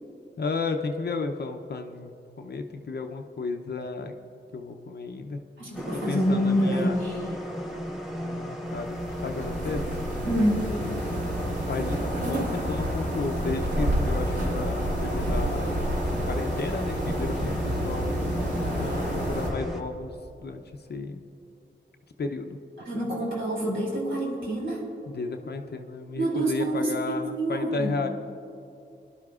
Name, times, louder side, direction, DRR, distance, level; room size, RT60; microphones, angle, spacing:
voice 1, 0.4-4.1 4.5-5.4 5.9-7.0 8.2-9.9 11.7-20.6 20.9-21.2 22.2-22.6 25.1-28.1, left 4 dB, 55° left, 5 dB, 0.6 m, -33 dB
voice 2, 5.6-7.1 10.2-10.7 22.9-24.8 26.1-27.9, right 1 dB, 85° right, -4 dB, 2.8 m, -26 dB
sound 1, 5.7-19.8, equal, ahead, 1.3 m, -35 dB
sound 2, 8.7-19.5, equal, 60° right, 3.0 m, -29 dB
22.5 x 11.5 x 2.4 m, 2.7 s
wide cardioid pair, 100°, 20 cm